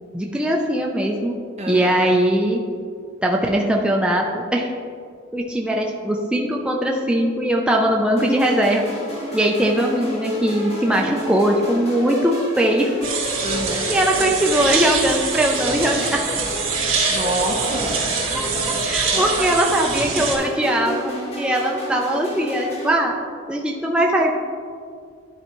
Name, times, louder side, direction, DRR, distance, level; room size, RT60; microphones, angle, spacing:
voice 1, 0.1-1.4 1.7-2.6 3.2-4.7 5.3-8.9 9.3-12.9 13.9-16.3 18.3-18.5 18.8-21.1 21.4-23.2 23.5-24.3, right 1 dB, 5° right, -1 dB, 0.4 m, -20 dB
voice 2, 1.6-2.0 13.4-13.9 16.8-18.1 19.1-19.5, right 1 dB, 35° right, -1 dB, 0.9 m, -27 dB
sound 1, 8.2-22.9, equal, 30° left, 1.5 m, -30 dB
sound 2, 13.0-20.4, right 5 dB, 70° right, 1.9 m, -24 dB
11.5 x 4.5 x 3.0 m, 2.2 s
head